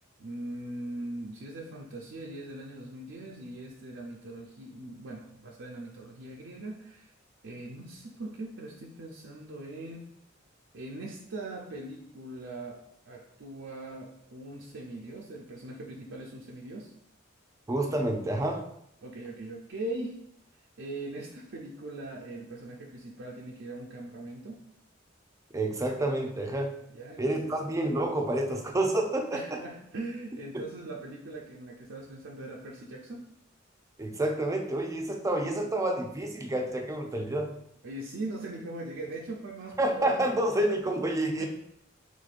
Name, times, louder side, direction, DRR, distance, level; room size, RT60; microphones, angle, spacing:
voice 1, 0.2-7.1 7.4-10.1 10.7-16.9 19.0-20.2 20.8-24.6 26.9-27.5 29.3-33.3 37.8-40.4 41.4-41.5, right 2 dB, 65° right, -2 dB, 0.5 m, -41 dB
voice 2, 17.7-18.6 25.5-26.8 27.2-29.6 30.5-30.6 34.0-37.5 39.8-41.4, right 1 dB, 15° right, 3 dB, 0.5 m, -29 dB
5.0 x 3.5 x 2.5 m, 0.74 s
head